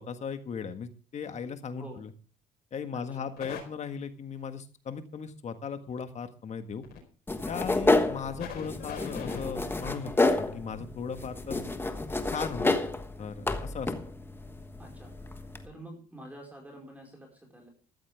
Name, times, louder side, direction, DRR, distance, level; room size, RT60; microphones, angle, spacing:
voice 1, 0.0-2.1 2.7-6.8 7.5-11.6 12.3-12.8 13.2-13.9, left 6 dB, 45° left, 8 dB, 1.7 m, -37 dB
voice 2, 2.9-3.3 14.8-17.7, right 1 dB, 10° right, 0 dB, 5.2 m, -48 dB
sound 1, 3.4-3.6 6.7-7.0 7.5-7.6 8.1-10.4 12.2-12.3 12.6-12.8 13.2-13.3, left 7 dB, 70° left, 4.6 m, -43 dB
sound 2, 7.3-15.7, left 2 dB, 15° left, 1.3 m, -30 dB
13.5 x 13.5 x 3.6 m, 0.38 s
cardioid pair, 110°, 17 cm